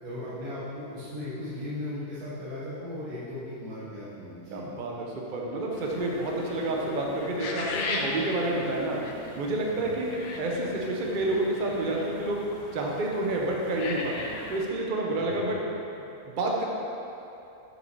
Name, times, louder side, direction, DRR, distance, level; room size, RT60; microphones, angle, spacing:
voice 1, 0.0-4.6 5.3-5.4 9.7-9.9 15.1-15.4, left 1 dB, 85° right, -9 dB, 1.8 m, -37 dB
voice 2, 4.5-9.0 9.4-12.4 12.7-15.6 16.3-16.6, right 2 dB, 40° right, -1 dB, 0.8 m, -29 dB
sound 1, 5.7-14.7, left 2 dB, 85° left, 1.2 m, -38 dB
6.2 x 5.2 x 4.6 m, 2.8 s
omnidirectional pair, 1.6 m